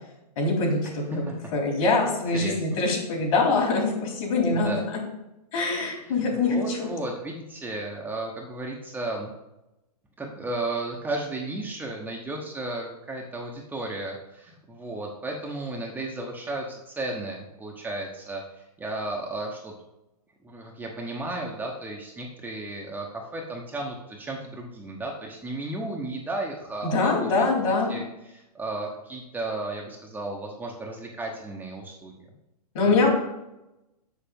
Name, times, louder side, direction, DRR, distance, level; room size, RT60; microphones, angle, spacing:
voice 1, 0.4-1.2 1.5-5.0 5.5-6.9 26.8-27.9 32.7-33.1, left 3 dB, 55° left, 0 dB, 3.6 m, -24 dB
voice 2, 4.5-4.8 6.0-9.3 10.2-19.7 20.4-27.3 27.9-32.3 32.8-33.0, right 2 dB, 10° right, -1 dB, 1.0 m, -34 dB
7.0 x 6.9 x 5.3 m, 0.92 s
hypercardioid pair, 135°, 20 cm